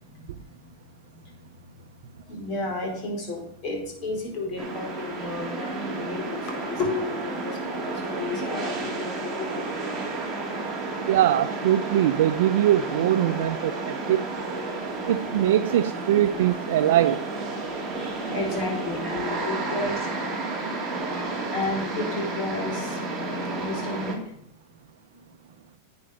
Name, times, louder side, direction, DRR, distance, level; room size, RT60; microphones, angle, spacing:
voice 1, 0.1-0.7 1.1-1.2 2.3-9.9 10.8-11.0 17.6-20.1 21.1-24.4 25.1-25.2, left 2 dB, 35° left, 1 dB, 4.5 m, -33 dB
sound 1, 4.6-24.1, right 2 dB, 10° right, 3.1 m, -31 dB
voice 2, 11.1-14.3 15.1-17.3, right 12 dB, 70° right, 8 dB, 0.5 m, -22 dB
11.0 x 8.8 x 5.1 m, 0.69 s
supercardioid pair, 150°, 0 cm